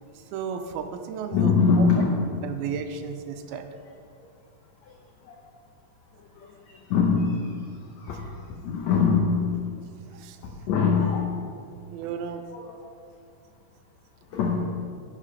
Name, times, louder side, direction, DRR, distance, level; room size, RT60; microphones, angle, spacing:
voice 1, 0.2-1.9 2.4-3.7 10.1-10.4 11.9-12.4, right 7 dB, 85° right, 7 dB, 2.5 m, -34 dB
voice 2, 1.3-2.3 5.3-5.4 6.4-6.5 6.9-7.5 8.0-9.6 10.4-11.3 12.5-12.8 14.3-14.7, left 5 dB, 80° left, 1 dB, 1.5 m, -23 dB
10.0 x 6.8 x 5.6 m, 2.2 s
omnidirectional pair, 4.3 m